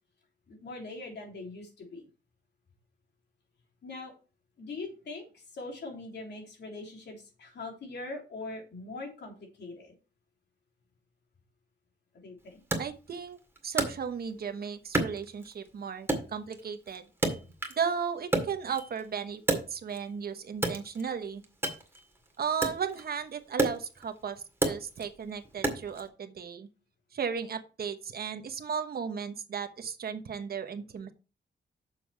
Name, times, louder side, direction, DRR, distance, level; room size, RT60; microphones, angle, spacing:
voice 1, 0.5-2.0 3.8-4.1 4.6-9.9 12.2-12.6, left 3 dB, 70° left, 1 dB, 3.4 m, -42 dB
Wood, 12.7-14.5 14.9-15.7 16.1-17.9 18.2-20.1 20.5-26.1, right 2 dB, 15° right, 2.0 m, -32 dB
voice 2, 12.8-13.4 13.6-17.1 17.8-21.4 22.4-26.7 27.1-31.1, right 6 dB, 60° right, 8 dB, 1.1 m, -35 dB
7.3 x 7.0 x 4.7 m, 0.33 s
wide cardioid pair, 135°, 18 cm